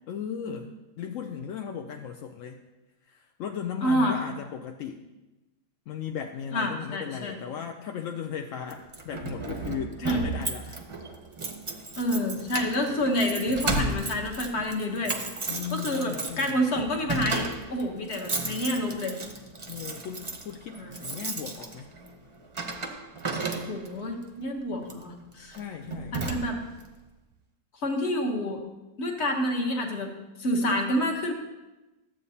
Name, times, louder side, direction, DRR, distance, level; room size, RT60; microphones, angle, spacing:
voice 1, 0.1-2.6 3.0-5.0 5.9-10.8 15.5-16.7 19.7-21.9 25.5-26.2, left 8 dB, 65° left, 3 dB, 0.8 m, -37 dB
voice 2, 3.8-4.1 6.5-7.4 10.0-10.2 12.0-15.2 15.7-19.2 20.8-20.9 23.7-25.6 26.1-26.6 27.8-28.6 29.0-30.1 30.4-31.3, equal, 45° left, 2 dB, 1.3 m, -28 dB
Keys jangling, 8.7-24.0 24.8-25.1 25.5-25.6 25.9-26.8, right 3 dB, 35° right, 0.5 m, -34 dB
13.0 x 7.9 x 2.8 m, 1.1 s
omnidirectional pair, 1.7 m